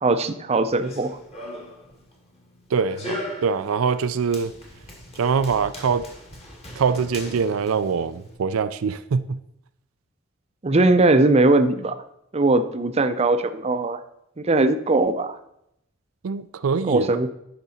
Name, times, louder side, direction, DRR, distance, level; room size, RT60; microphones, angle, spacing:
voice 1, 0.0-1.1 10.6-12.0 12.3-14.0 14.4-15.4 16.9-17.3, right 2 dB, 30° right, 9 dB, 0.6 m, -20 dB
Run, 0.7-8.4, left 1 dB, 30° left, 1.9 m, -39 dB
voice 2, 2.7-4.5 5.2-6.1 6.8-9.4 16.2-17.1, right 5 dB, 85° right, 12 dB, 0.4 m, -23 dB
10.0 x 6.0 x 4.2 m, 0.78 s
head